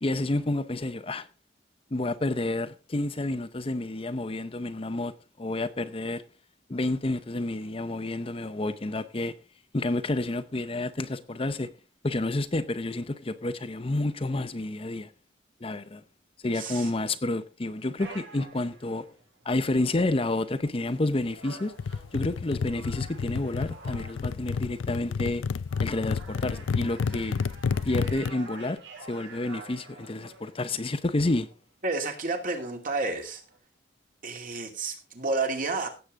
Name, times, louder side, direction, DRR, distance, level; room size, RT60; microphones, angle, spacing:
voice 1, 0.0-1.3 1.9-5.1 5.4-6.2 6.7-9.3 9.7-11.7 12.0-15.1 15.6-16.0 16.4-19.1 19.4-21.7 22.1-25.4 25.8-27.4 27.8-28.8 29.1-31.5, left 2 dB, 30° left, 0.7 m, -29 dB
voice 2, 16.5-16.9 31.8-33.4 34.2-35.9, right 3 dB, 45° right, 2.5 m, -30 dB
sound 1, 18.0-33.6, right 4 dB, 90° right, 6.6 m, -50 dB
sound 2, 21.8-28.3, left 5 dB, 85° left, 0.4 m, -30 dB
16.5 x 7.9 x 3.7 m
head